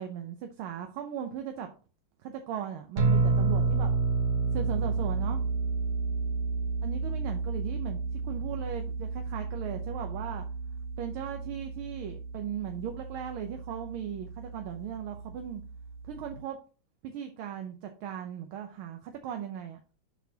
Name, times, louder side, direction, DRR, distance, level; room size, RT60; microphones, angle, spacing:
voice 1, 0.0-1.7 2.2-3.9 4.5-5.4 6.8-10.5 11.0-15.6 16.1-16.6 17.0-19.8, right 9 dB, 80° right, 5 dB, 1.6 m, -37 dB
sound 1, 3.0-16.4, right 4 dB, 55° right, 1.6 m, -31 dB
11.5 x 4.1 x 2.8 m, 0.36 s
omnidirectional pair, 2.3 m